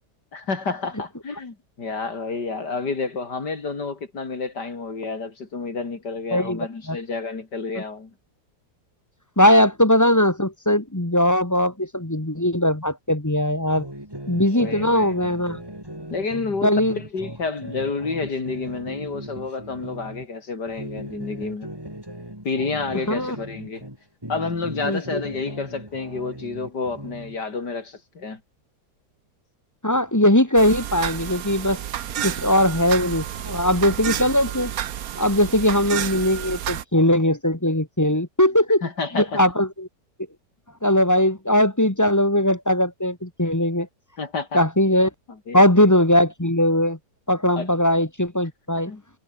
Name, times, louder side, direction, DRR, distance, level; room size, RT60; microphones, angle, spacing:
voice 1, 0.3-8.1 14.5-15.1 16.1-21.7 22.4-23.8 24.3-28.4 38.8-39.4 44.2-44.6 45.5-45.6 47.6-47.7 48.9-49.0, left 4 dB, 75° left, 4.0 m, -30 dB
voice 2, 6.3-7.0 9.4-13.9 14.3-15.6 16.6-17.0 23.1-23.4 24.8-25.2 29.8-31.8 32.2-34.7 35.2-38.8 39.1-39.9 40.8-43.9 44.5-45.1 45.5-47.0 47.3-48.9, left 1 dB, 10° left, 1.9 m, -20 dB
sound 1, 13.8-20.2 20.7-24.0 24.2-27.4, right 1 dB, 15° right, 5.5 m, -38 dB
sound 2, 30.6-36.8, right 10 dB, 60° right, 1.3 m, -30 dB
omnidirectional pair, 1.8 m